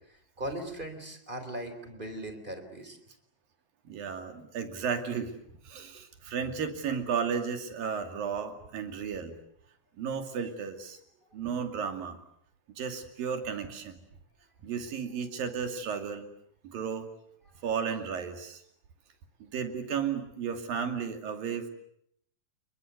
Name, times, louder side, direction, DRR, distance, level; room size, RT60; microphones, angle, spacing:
voice 1, 0.4-3.0, right 1 dB, 15° right, 8 dB, 3.6 m, -38 dB
voice 2, 3.9-5.3 5.6-9.4 10.0-11.0 11.3-12.2 12.8-14.0 14.6-16.3 16.6-17.1 17.6-18.6 19.4-21.7, right 6 dB, 75° right, 6 dB, 4.3 m, -33 dB
29.5 x 22.0 x 8.2 m, 0.70 s
omnidirectional pair, 4.1 m